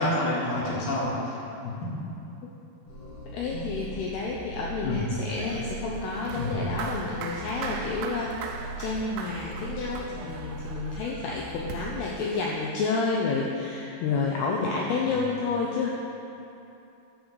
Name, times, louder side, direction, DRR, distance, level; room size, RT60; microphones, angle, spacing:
voice 1, 0.0-1.4 1.6-2.1 3.5-3.7 4.8-5.0 6.4-6.5, left 1 dB, 65° left, -5 dB, 3.1 m, -28 dB
sound 1, 2.9-12.0, right 4 dB, 45° left, 3.7 m, -40 dB
voice 2, 3.3-15.9, left 4 dB, 85° left, -2 dB, 2.3 m, -30 dB
sound 2, 5.3-13.1, right 5 dB, 85° right, 2.6 m, -41 dB
11.0 x 5.2 x 6.3 m, 2.9 s
omnidirectional pair, 5.4 m